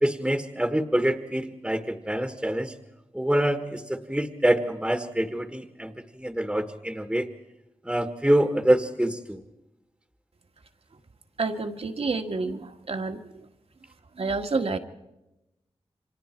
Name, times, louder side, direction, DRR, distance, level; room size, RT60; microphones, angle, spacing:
voice 1, 0.0-2.7 3.1-7.3 7.9-9.4, right 1 dB, 5° right, 7 dB, 1.5 m, -25 dB
voice 2, 11.4-13.3 14.2-14.8, right 3 dB, 65° right, 5 dB, 1.7 m, -29 dB
29.0 x 25.5 x 4.5 m, 0.95 s
wide cardioid pair, 85°, 11 cm